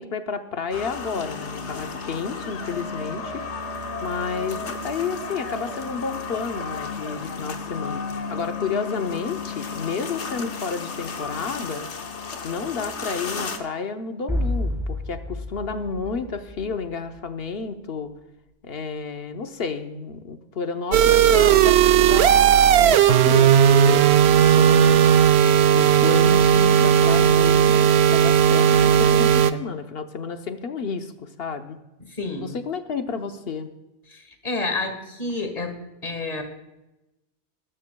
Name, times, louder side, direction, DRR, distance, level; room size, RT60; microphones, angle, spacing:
voice 1, 0.0-3.4 4.0-11.8 12.4-18.1 18.6-23.5 23.8-25.0 25.7-31.8 32.4-33.7, left 5 dB, 60° left, 7 dB, 1.0 m, -31 dB
sound 1, 0.7-13.6, left 4 dB, 80° left, 1.4 m, -33 dB
sound 2, 14.3-17.2, left 1 dB, ahead, 2.9 m, -29 dB
sound 3, 20.9-29.5, right 9 dB, 70° right, 0.8 m, -16 dB
voice 2, 32.0-32.6 34.1-36.4, left 3 dB, 35° left, 5 dB, 1.7 m, -30 dB
20.5 x 12.5 x 2.3 m, 0.97 s
omnidirectional pair, 1.2 m